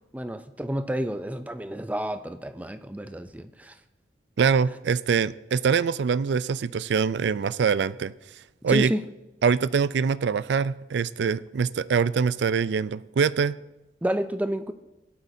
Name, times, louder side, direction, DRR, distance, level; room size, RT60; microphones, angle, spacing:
voice 1, 0.0-3.8 8.7-9.0 14.0-14.7, equal, 10° right, 10 dB, 0.4 m, -30 dB
voice 2, 4.4-8.1 8.6-8.9 9.4-13.6, right 6 dB, 80° right, 18 dB, 0.4 m, -24 dB
17.0 x 12.0 x 2.7 m, 1.0 s
head